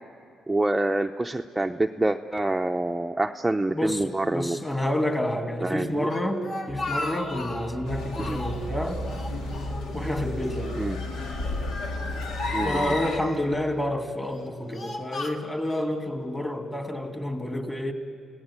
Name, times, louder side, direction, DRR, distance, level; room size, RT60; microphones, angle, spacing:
voice 1, 0.5-4.6 5.6-6.1 8.3-8.4 10.8-11.0 12.5-12.9, right 2 dB, 10° right, 4 dB, 0.6 m, -26 dB
voice 2, 3.7-9.0 9.9-10.8 12.6-17.9, left 1 dB, 15° left, 5 dB, 2.6 m, -29 dB
Speech, 6.1-7.8 8.1-8.7 9.1-10.2 10.4-10.6 11.4-12.4 13.1-13.6 14.2-15.9, left 2 dB, 50° left, 2.1 m, -36 dB
sound 1, 6.7-12.0, left 2 dB, 70° left, 3.1 m, -42 dB
sound 2, 7.8-13.2, left 1 dB, 90° left, 2.4 m, -32 dB
30.0 x 17.5 x 8.9 m, 2.4 s
cardioid pair, 90°, 0 cm